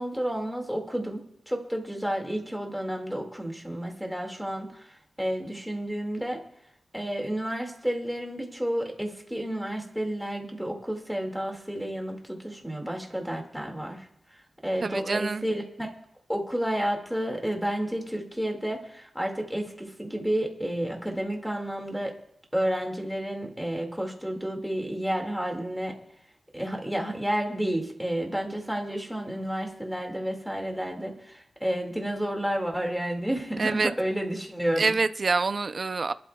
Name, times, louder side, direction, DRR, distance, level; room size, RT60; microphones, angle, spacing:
voice 1, 0.0-6.4 6.9-14.1 14.6-15.9 16.3-22.2 22.5-26.0 26.5-35.0, equal, ahead, 1 dB, 2.1 m, -31 dB
voice 2, 14.8-15.5 33.6-33.9 34.8-36.1, right 4 dB, 40° right, 12 dB, 0.5 m, -26 dB
27.0 x 12.0 x 2.3 m, 0.74 s
wide cardioid pair, 170°, 0 cm